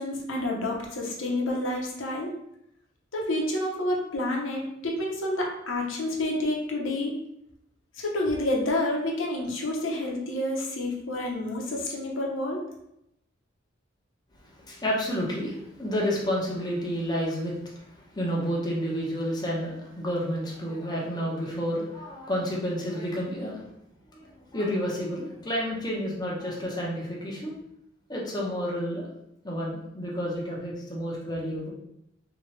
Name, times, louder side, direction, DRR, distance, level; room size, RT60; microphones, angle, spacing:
voice 1, 0.0-2.3 3.1-7.2 8.0-12.7, left 1 dB, 90° left, -1 dB, 0.8 m, -29 dB
voice 2, 14.4-23.6 24.1-27.5 28.1-29.1 29.4-31.7, equal, 20° left, -4 dB, 0.9 m, -30 dB
3.2 x 2.9 x 3.2 m, 0.80 s
head